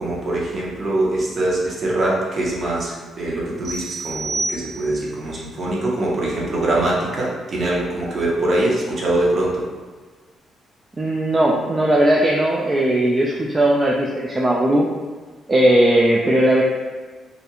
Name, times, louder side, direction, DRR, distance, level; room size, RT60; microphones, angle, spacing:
voice 1, 0.0-9.6, right 1 dB, 45° right, -5 dB, 0.7 m, -23 dB
sound 1, 3.6-5.2, right 2 dB, 75° right, 1.1 m, -29 dB
voice 2, 11.0-14.9 15.5-16.6, right 1 dB, 25° right, -3 dB, 0.3 m, -17 dB
2.4 x 2.2 x 2.8 m, 1.4 s
cardioid pair, 90°, 0 cm